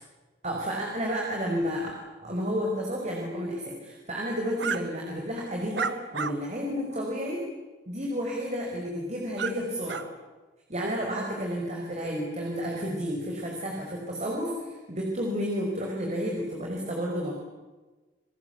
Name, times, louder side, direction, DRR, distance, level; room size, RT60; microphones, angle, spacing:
voice 1, 0.4-1.9 2.2-7.4 7.9-10.0 10.7-17.3, equal, 40° right, -1 dB, 5.7 m, -31 dB
sound 1, 4.6-4.8 5.8-6.3 6.9-7.0 9.4-9.5 9.9-10.0, right 6 dB, 75° right, 1.3 m, -30 dB
30.0 x 22.0 x 8.4 m, 1.2 s
head